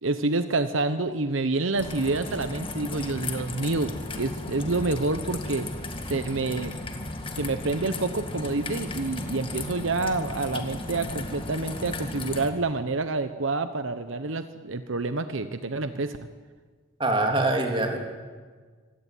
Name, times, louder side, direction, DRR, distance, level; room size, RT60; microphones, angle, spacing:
voice 1, 0.0-5.7 6.1-6.8 7.4-16.2, right 3 dB, 75° right, 10 dB, 1.0 m, -28 dB
Raindrop / Trickle dribble, 1.8-12.5, left 2 dB, 25° left, 2.0 m, -35 dB
voice 2, 17.0-18.0, right 2 dB, 25° right, 2 dB, 3.2 m, -24 dB
25.5 x 17.0 x 9.3 m, 1.5 s
head